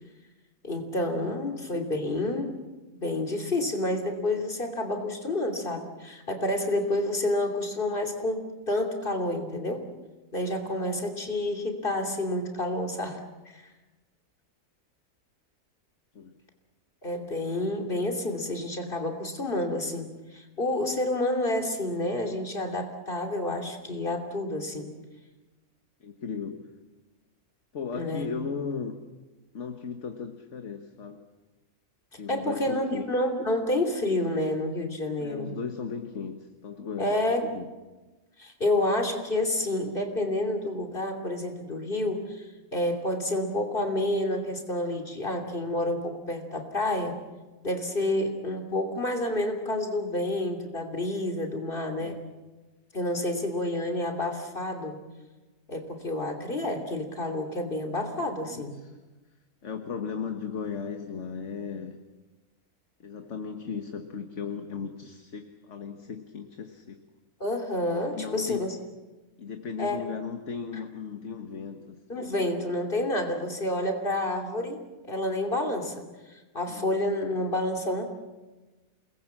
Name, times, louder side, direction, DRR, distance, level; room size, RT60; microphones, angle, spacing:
voice 1, 0.6-2.5 3.0-9.9 10.3-13.2 13.4-13.7 17.0-24.9 27.9-28.3 32.3-35.6 37.0-37.5 38.4-47.2 47.6-52.2 52.9-55.0 55.7-58.8 67.4-68.8 69.8-70.0 72.1-76.0 76.3-78.0, left 1 dB, 35° left, 4 dB, 3.2 m, -29 dB
voice 2, 26.0-26.7 27.7-29.0 29.5-31.2 32.2-33.1 35.2-37.7 51.9-52.2 58.5-59.0 59.6-62.0 63.0-67.0 68.1-68.8 69.4-72.3 76.7-76.9, left 5 dB, 55° left, 6 dB, 1.7 m, -36 dB
29.0 x 20.5 x 7.4 m, 1.2 s
omnidirectional pair, 1.5 m